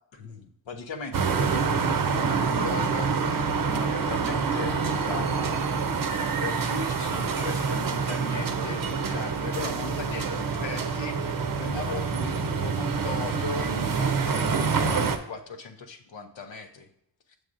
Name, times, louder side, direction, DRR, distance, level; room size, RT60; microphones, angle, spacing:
voice 1, 0.1-5.7 6.4-16.9, left 4 dB, 75° left, 6 dB, 0.8 m, -38 dB
sound 1, 1.1-15.2, right 5 dB, 50° right, 0.7 m, -27 dB
7.2 x 6.3 x 2.5 m, 0.76 s
cardioid pair, 65°, 45 cm